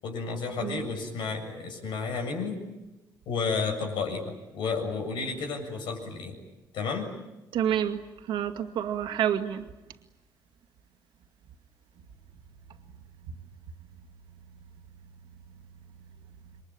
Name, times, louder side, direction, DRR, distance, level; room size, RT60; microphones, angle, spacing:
voice 1, 0.0-2.6 3.3-6.4 6.7-7.1, left 4 dB, 80° left, 7.5 m, -32 dB
voice 2, 7.5-9.6, right 10 dB, 85° right, 2.1 m, -28 dB
28.0 x 23.5 x 8.8 m
cardioid pair, 140°, 8 cm